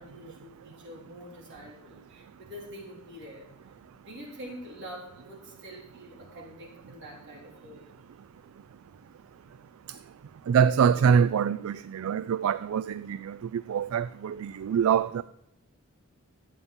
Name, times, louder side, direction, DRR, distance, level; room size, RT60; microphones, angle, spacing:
voice 1, 0.0-3.7 4.0-7.9, equal, 60° right, 4.0 m, -46 dB
voice 2, 10.5-15.2, right 7 dB, 75° right, 0.3 m, -25 dB
12.5 x 8.3 x 4.3 m
head